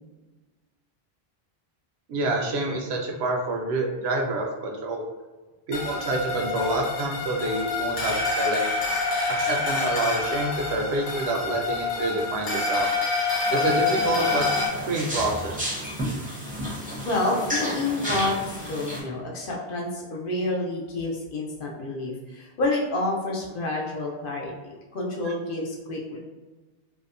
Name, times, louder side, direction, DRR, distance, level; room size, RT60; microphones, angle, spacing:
voice 1, 2.1-5.0 5.7-8.6 9.3-12.9 13.5-14.5 14.9-15.6, right 2 dB, 80° right, 0 dB, 0.8 m, -27 dB
sound 1, 5.7-14.7, left 3 dB, 90° left, 0.9 m, -27 dB
sound 2, 13.5-19.0, equal, 10° right, 0.5 m, -32 dB
voice 2, 17.0-24.5 24.9-26.2, left 2 dB, 65° left, -2 dB, 0.7 m, -29 dB
2.7 x 2.1 x 2.4 m, 1.2 s
omnidirectional pair, 1.0 m